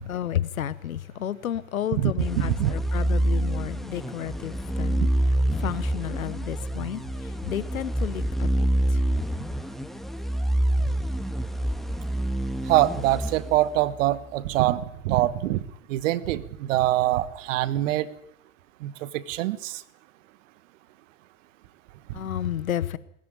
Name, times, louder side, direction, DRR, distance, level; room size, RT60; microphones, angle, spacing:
voice 1, 0.0-5.0 5.6-7.0 7.5-8.6 22.1-23.0, left 10 dB, 80° left, 1.0 m, -31 dB
voice 2, 1.9-2.7 5.0-5.1 5.7-5.8 12.7-18.1 18.8-19.8 22.1-22.2, right 14 dB, 65° right, 1.4 m, -24 dB
sound 1, 2.2-14.0, right 1 dB, ahead, 1.7 m, -27 dB
21.5 x 13.5 x 9.2 m
figure-of-eight pair, 75°, 41 cm